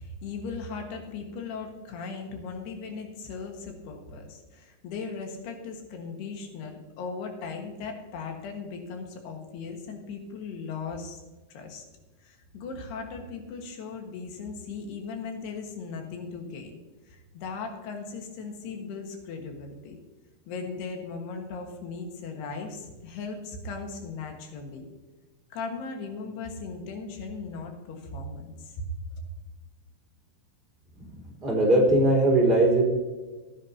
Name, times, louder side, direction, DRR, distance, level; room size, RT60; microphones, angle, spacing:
voice 1, 0.0-11.2 11.5-11.8 12.2-16.8 17.1-20.0 20.5-24.9 25.5-28.9, left 4 dB, 80° left, 3 dB, 3.6 m, -38 dB
voice 2, 31.0-32.8, right 1 dB, 15° right, -5 dB, 3.6 m, -21 dB
15.0 x 10.0 x 2.8 m, 1.3 s
omnidirectional pair, 4.7 m